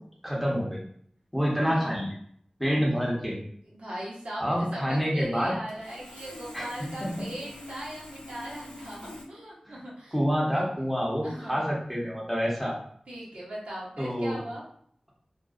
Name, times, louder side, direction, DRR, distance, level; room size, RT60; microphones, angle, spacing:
voice 1, 0.2-0.8 1.3-2.1 2.6-3.4 4.4-5.6 6.5-6.7 7.0-7.1 9.7-9.8 10.1-12.8 14.0-14.4, equal, ahead, -4 dB, 0.8 m, -27 dB
voice 2, 1.6-1.9 3.8-10.1 10.5-10.6 11.2-11.7 13.1-14.6, right 1 dB, 75° right, -6 dB, 0.8 m, -39 dB
Sawing, 5.7-9.2, left 1 dB, 85° left, 0.6 m, -44 dB
2.5 x 2.2 x 2.3 m, 0.64 s
wide cardioid pair, 45°, 2 cm